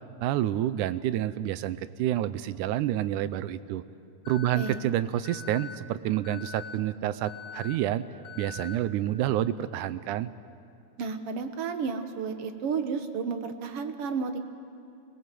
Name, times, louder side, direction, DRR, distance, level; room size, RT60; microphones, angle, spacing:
voice 1, 0.2-3.8 4.3-8.0 8.4-10.3, right 12 dB, 80° right, 14 dB, 2.2 m, -28 dB
Alarm, 4.2-4.7 5.2-5.7 6.2-6.7 7.2-7.7 8.2-8.7, left 7 dB, 20° left, 2.3 m, -42 dB
voice 2, 11.0-14.4, right 5 dB, 60° right, 7 dB, 1.9 m, -32 dB
26.5 x 21.0 x 7.7 m, 2.7 s
omnidirectional pair, 3.5 m